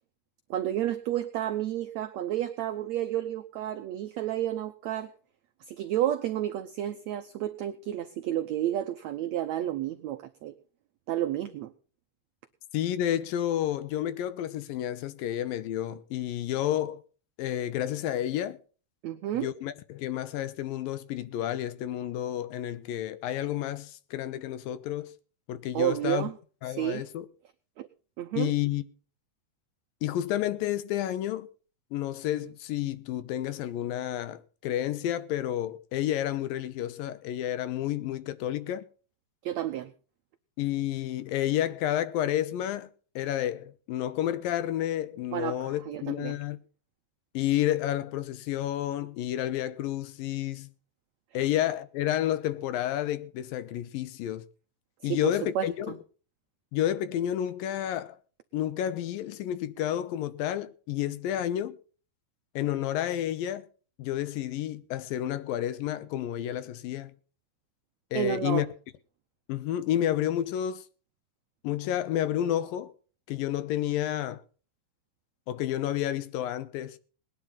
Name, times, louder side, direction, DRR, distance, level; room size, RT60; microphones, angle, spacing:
voice 1, 0.5-5.1 5.7-10.5 11.1-11.7 19.0-19.5 25.7-26.3 26.7-27.0 27.8-27.9 28.2-28.5 39.4-39.9 45.3-46.4 55.0-55.9 68.1-68.7, right 12 dB, 90° right, 1.5 m, -31 dB
voice 2, 12.7-17.0 17.4-18.6 19.3-25.1 25.5-26.3 26.6-27.3 28.4-28.8 30.0-31.5 31.9-38.9 40.6-42.9 43.2-46.6 47.3-50.7 51.3-54.4 55.0-56.0 56.7-58.2 58.5-61.8 62.6-63.7 64.0-67.1 68.1-68.7 69.5-70.8 71.6-72.9 73.3-74.4 75.5-77.0, left 12 dB, 80° left, 2.6 m, -30 dB
19.5 x 10.5 x 3.9 m
omnidirectional pair, 4.2 m